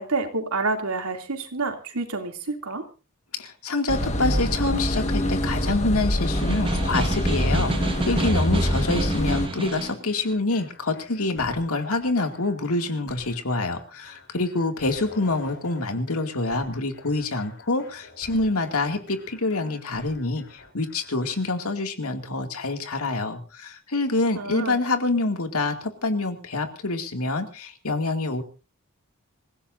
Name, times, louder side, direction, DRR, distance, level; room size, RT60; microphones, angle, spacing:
voice 1, 0.0-2.8 24.3-24.8, right 3 dB, 90° right, 4 dB, 2.8 m, -28 dB
voice 2, 3.3-28.4, left 2 dB, 80° left, 5 dB, 2.4 m, -26 dB
sound 1, 3.9-9.5, equal, 30° left, 1.6 m, -25 dB
Snare drum, 6.2-10.0, right 2 dB, 25° right, 1.2 m, -29 dB
sound 2, 7.9-21.5, left 2 dB, 55° left, 5.8 m, -47 dB
26.5 x 16.0 x 2.6 m, 0.32 s
head